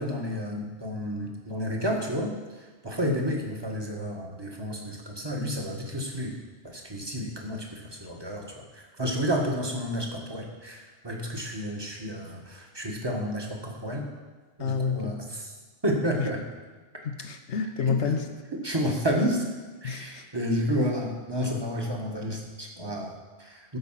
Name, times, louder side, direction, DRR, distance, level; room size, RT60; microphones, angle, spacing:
voice 1, 0.0-2.3 2.8-6.3 6.6-14.1 14.6-15.5 15.8-16.4 17.9-18.0 18.6-19.4 19.8-23.8, equal, 20° right, 0 dB, 1.7 m, -31 dB
voice 2, 14.6-15.4 16.2-16.3 17.0-18.3 19.8-20.2, left 5 dB, 70° left, 7 dB, 1.2 m, -29 dB
13.5 x 5.4 x 7.5 m, 1.3 s
omnidirectional pair, 1.2 m